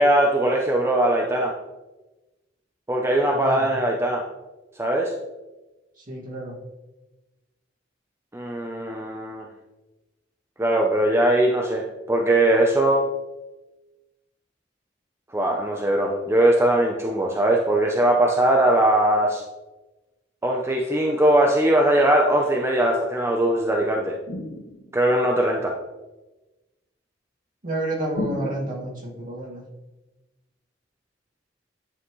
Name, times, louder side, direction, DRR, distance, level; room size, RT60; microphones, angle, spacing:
voice 1, 0.0-1.5 2.9-4.2 4.8-5.1 8.3-9.5 10.6-13.1 15.3-19.4 20.4-24.2 24.9-25.7, right 1 dB, 15° right, 0 dB, 0.6 m, -20 dB
voice 2, 3.3-3.7 6.0-6.6 27.6-29.6, right 1 dB, 50° right, -3 dB, 2.1 m, -30 dB
sound 1, 24.3-25.1 28.2-29.1, left 1 dB, 70° left, 1.8 m, -33 dB
10.0 x 5.6 x 3.1 m, 1.1 s
head